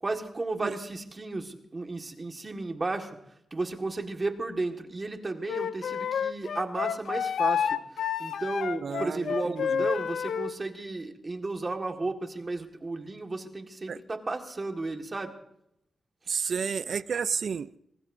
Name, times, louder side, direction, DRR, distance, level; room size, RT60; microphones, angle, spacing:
voice 1, 0.0-3.2 3.5-7.8 8.2-15.3 16.3-16.4, right 3 dB, 25° right, 1.7 m, -33 dB
Wind instrument woodwind instrument, 5.5-10.5, left 7 dB, 75° left, 0.5 m, -29 dB
voice 2, 8.8-9.9 13.9-14.0 16.3-17.8, right 6 dB, 60° right, 0.5 m, -31 dB
24.5 x 19.5 x 2.7 m
wide cardioid pair, 145°, 0 cm